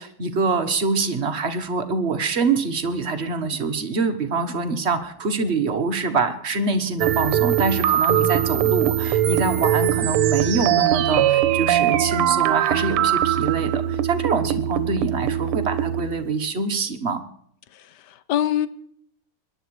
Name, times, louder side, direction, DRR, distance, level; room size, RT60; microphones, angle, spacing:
voice 1, 0.0-17.2, right 4 dB, 40° right, 1.1 m, -25 dB
sound 1, 7.0-16.3, right 11 dB, 80° right, 1.7 m, -21 dB
voice 2, 17.7-18.7, left 11 dB, 65° left, 1.1 m, -25 dB
22.5 x 11.0 x 4.8 m
omnidirectional pair, 2.4 m